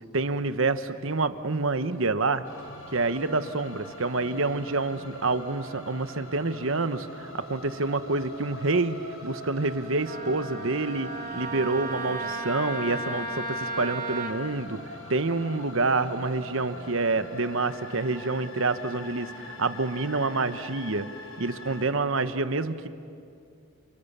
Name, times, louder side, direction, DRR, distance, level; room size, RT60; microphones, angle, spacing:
voice 1, 0.1-2.4 2.9-9.0 9.2-14.8 15.1-21.1 21.4-22.9, right 3 dB, 65° right, 11 dB, 1.1 m, -27 dB
sound 1, 2.4-21.8, left 1 dB, 70° left, 4.2 m, -44 dB
Wind instrument woodwind instrument, 10.0-14.4, right 1 dB, 40° right, 1.6 m, -34 dB
29.5 x 29.5 x 6.8 m, 2.4 s
head